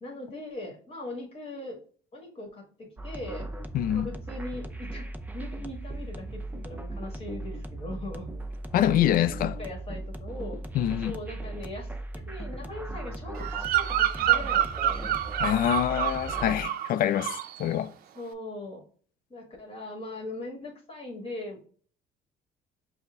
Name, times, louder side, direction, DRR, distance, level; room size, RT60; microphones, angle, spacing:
voice 1, 0.0-1.8 2.1-3.5 3.9-5.1 5.3-8.3 9.1-10.6 11.0-11.9 12.3-15.1 18.1-18.8 19.3-21.7, left 2 dB, 35° left, 1.4 m, -40 dB
sound 1, 3.0-16.6, right 2 dB, 10° right, 0.5 m, -38 dB
voice 2, 3.7-4.1 8.7-9.5 10.7-11.2 15.4-17.9, left 11 dB, 60° left, 0.4 m, -25 dB
Bird vocalization bird call bird song, 13.4-16.9 17.2-17.6, right 12 dB, 60° right, 0.5 m, -27 dB
5.5 x 2.1 x 3.5 m
cardioid pair, 110°, 17 cm